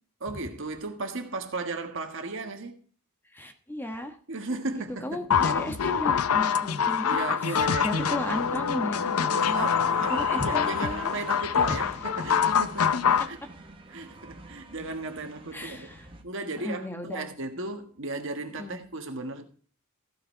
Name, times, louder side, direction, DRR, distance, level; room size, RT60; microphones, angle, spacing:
voice 1, 0.2-2.8 4.3-5.4 7.0-8.7 9.3-13.4 13.9-15.9 16.2-19.4, right 3 dB, 60° right, 1.4 m, -35 dB
voice 2, 3.3-4.2 4.7-9.7 10.1-11.1 15.5-16.1 16.5-17.3 18.6-18.8, left 1 dB, 10° left, 1.2 m, -35 dB
sound 1, 5.3-13.3, left 7 dB, 80° left, 0.6 m, -25 dB
sound 2, 9.3-16.2, right 3 dB, 25° right, 1.3 m, -46 dB
15.0 x 5.8 x 4.5 m
head